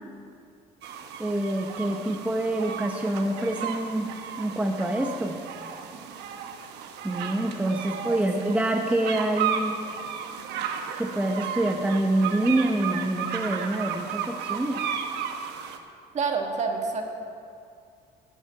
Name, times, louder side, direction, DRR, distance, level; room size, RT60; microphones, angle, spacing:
sound 1, 0.8-15.8, right 7 dB, 85° right, 0.9 m, -34 dB
voice 1, 1.2-4.1 4.4-5.4 7.0-9.8 11.0-14.8, right 1 dB, 10° right, 2 dB, 0.8 m, -26 dB
voice 2, 16.1-17.0, right 5 dB, 45° right, 2 dB, 1.7 m, -27 dB
11.5 x 6.3 x 9.0 m, 2.3 s
cardioid pair, 110°, 17 cm